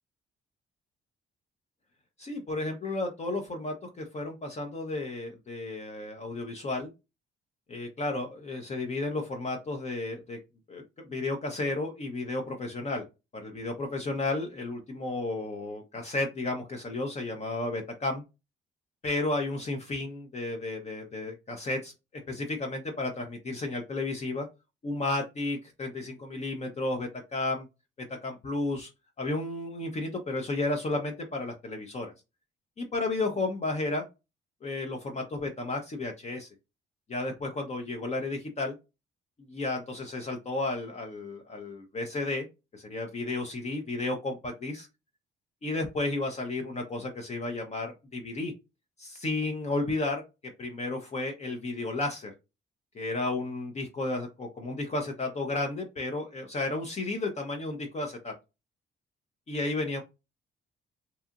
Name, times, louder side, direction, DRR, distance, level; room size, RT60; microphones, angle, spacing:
voice 1, 2.2-6.9 7.7-10.4 10.7-13.0 13.3-18.2 19.0-21.9 22.3-24.5 24.8-27.7 28.0-28.9 29.2-32.1 32.8-34.0 34.6-36.5 37.1-38.7 39.5-42.5 42.7-44.9 45.6-48.5 49.0-52.3 52.9-58.3 59.5-60.0, left 2 dB, 35° left, 3 dB, 0.6 m, -33 dB
2.8 x 2.4 x 2.3 m, 0.26 s
cardioid pair, 90°, 20 cm